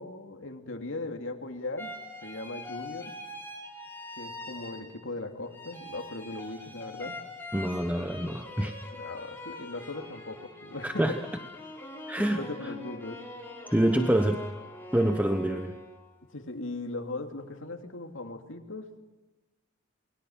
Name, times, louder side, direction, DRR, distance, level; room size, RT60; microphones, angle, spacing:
voice 1, 0.0-1.9 2.2-3.1 4.2-7.2 8.9-11.2 12.3-13.2 13.9-14.2 16.3-19.0, left 2 dB, 70° left, 5 dB, 2.8 m, -38 dB
sound 1, 1.8-5.2 5.5-16.1, left 2 dB, 10° left, 4.3 m, -43 dB
voice 2, 7.5-8.7 10.8-11.2 12.1-12.4 13.7-14.4 14.9-15.7, right 1 dB, 10° right, 6 dB, 1.1 m, -26 dB
28.5 x 22.0 x 7.3 m, 1.1 s
head